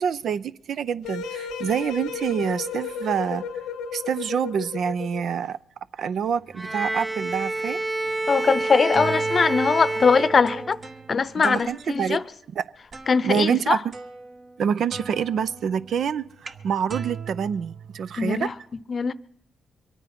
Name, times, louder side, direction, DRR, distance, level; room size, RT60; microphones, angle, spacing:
voice 1, 0.0-3.4 3.9-5.6 6.0-7.8 11.4-12.2 12.6-12.7 13.2-13.8 14.6-18.5, right 7 dB, 70° right, 0.5 m, -26 dB
sound 1, 1.0-5.4, left 6 dB, 90° left, 1.0 m, -34 dB
Bowed string instrument, 6.6-11.0, right 2 dB, 20° right, 0.8 m, -28 dB
voice 2, 8.3-10.8 11.1-12.2 13.1-13.8 18.2-18.5 18.9-19.1, left 5 dB, 50° left, 0.7 m, -21 dB
sound 2, 8.6-12.2 12.9-13.4 13.9-14.6 14.9-18.4, right 5 dB, 45° right, 1.3 m, -40 dB
23.5 x 9.1 x 5.9 m
supercardioid pair, 55°, 0 cm